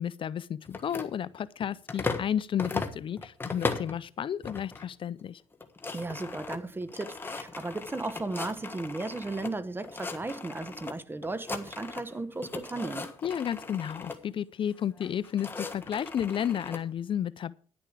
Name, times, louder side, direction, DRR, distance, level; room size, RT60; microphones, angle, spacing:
voice 1, 0.0-5.4 13.2-17.5, left 9 dB, 50° left, 0.5 m, -32 dB
sound 1, 0.7-2.3 2.6-4.0 4.4-4.9 5.2-5.3 5.5-9.5 9.8-10.9 11.2-12.1 12.4-14.2 15.0-16.8, left 3 dB, 20° left, 1.5 m, -37 dB
voice 2, 5.9-13.1, right 2 dB, 20° right, 1.1 m, -35 dB
10.5 x 10.0 x 4.8 m
cardioid pair, 100°, 12 cm